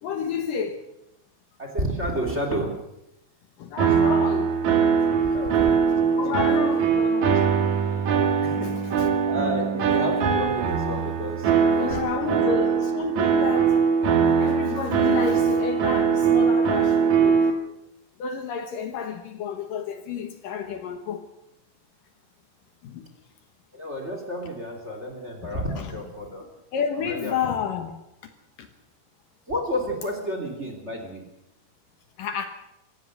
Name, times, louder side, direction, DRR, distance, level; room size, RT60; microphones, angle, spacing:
voice 1, 0.0-0.8 3.6-4.5 6.2-7.5 11.8-13.8 14.4-17.4 18.2-21.2 22.8-23.1 25.5-25.9 26.7-27.9 28.6-28.7 32.2-32.5, left 7 dB, 65° left, 7 dB, 2.8 m, -30 dB
voice 2, 1.6-2.7 5.3-5.5 6.1-6.7 8.4-12.5 23.7-26.4 26.9-27.4 29.5-31.3, equal, 20° right, 4 dB, 2.9 m, -31 dB
sound 1, 3.8-17.5, right 6 dB, 55° right, 2.9 m, -21 dB
25.5 x 15.5 x 6.6 m, 0.85 s
omnidirectional pair, 4.5 m